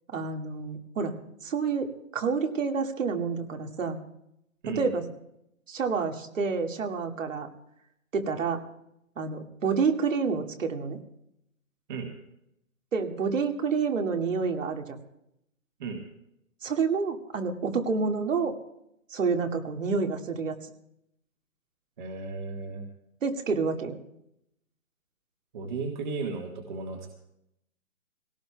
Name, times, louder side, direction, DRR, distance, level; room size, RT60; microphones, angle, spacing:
voice 1, 0.1-1.1 1.4-4.0 4.7-5.0 5.7-7.5 8.1-8.6 9.2-11.0 12.9-15.0 16.6-18.5 19.1-20.6 23.2-24.0, right 5 dB, 65° right, 4 dB, 2.1 m, -28 dB
voice 2, 22.0-22.9 25.5-27.1, right 4 dB, 35° right, 2 dB, 1.6 m, -34 dB
20.5 x 17.5 x 2.3 m, 0.78 s
hypercardioid pair, 160°, 41 cm